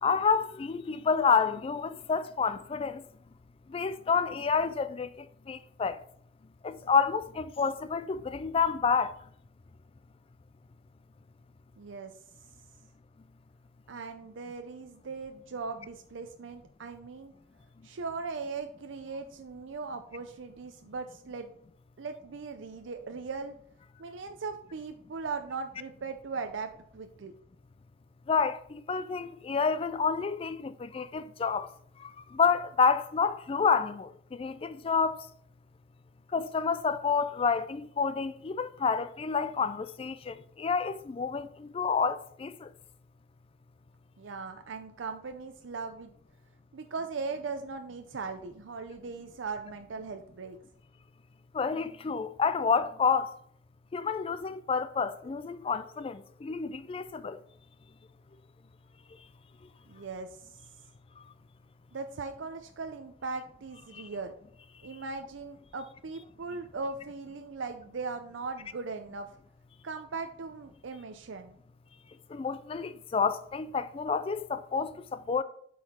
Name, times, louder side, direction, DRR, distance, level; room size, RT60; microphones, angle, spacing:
voice 1, 0.0-3.0 3.7-6.0 6.6-9.2 28.3-31.7 32.0-35.3 36.3-42.7 51.5-53.4 53.9-57.4 63.9-64.1 72.3-75.4, left 5 dB, 30° left, 0.3 m, -29 dB
voice 2, 11.8-12.1 13.9-17.3 17.8-21.5 22.0-23.5 24.0-27.3 44.2-46.1 46.7-50.6 59.9-60.5 61.9-64.3 64.8-69.3 69.8-71.6, right 4 dB, 90° right, 0.5 m, -39 dB
7.9 x 4.7 x 4.2 m
head